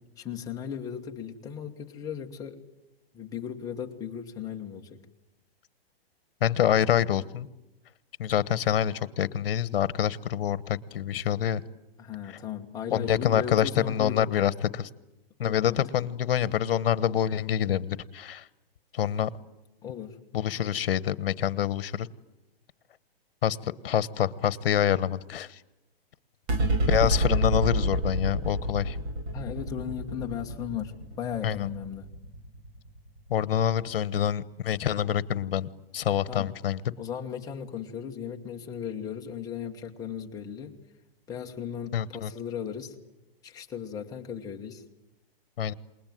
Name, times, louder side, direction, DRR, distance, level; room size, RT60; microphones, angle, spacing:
voice 1, 0.2-2.6 3.1-5.0 12.0-14.3 15.4-15.9 19.8-20.2 27.0-27.1 29.3-32.1 36.3-36.5 37.0-40.8 41.3-42.9 43.4-44.8, left 8 dB, 10° left, 1 dB, 1.4 m, -36 dB
voice 2, 6.4-7.5 8.2-11.6 12.9-14.9 15.4-18.4 18.9-19.3 20.3-22.1 23.4-25.6 26.9-29.0 31.4-31.7 33.3-36.8 41.9-42.3 45.6-45.7, left 10 dB, 65° left, 17 dB, 1.3 m, -26 dB
sound 1, 26.5-33.2, right 1 dB, 25° right, 1.9 m, -29 dB
28.0 x 21.0 x 9.4 m, 0.99 s
hypercardioid pair, 165°, 30 cm